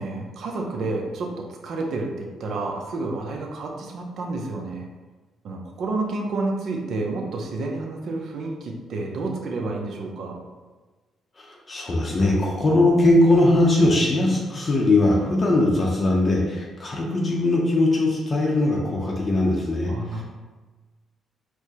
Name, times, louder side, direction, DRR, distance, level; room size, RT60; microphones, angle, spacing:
voice 1, 0.0-4.9 5.4-10.4 19.9-20.2, right 2 dB, 65° right, 1 dB, 0.5 m, -30 dB
voice 2, 11.4-20.2, left 2 dB, 35° left, -2 dB, 0.6 m, -20 dB
4.5 x 2.1 x 2.8 m, 1.3 s
cardioid pair, 90°, 0 cm